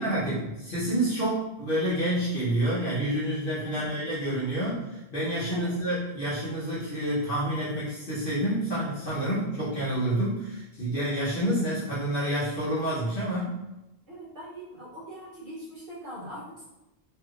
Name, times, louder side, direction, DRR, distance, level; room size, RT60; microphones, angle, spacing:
voice 1, 0.0-13.5, right 1 dB, 55° left, -10 dB, 1.1 m, -28 dB
voice 2, 14.1-16.6, equal, 60° right, -9 dB, 1.1 m, -41 dB
3.3 x 3.1 x 2.4 m, 0.94 s
omnidirectional pair, 1.1 m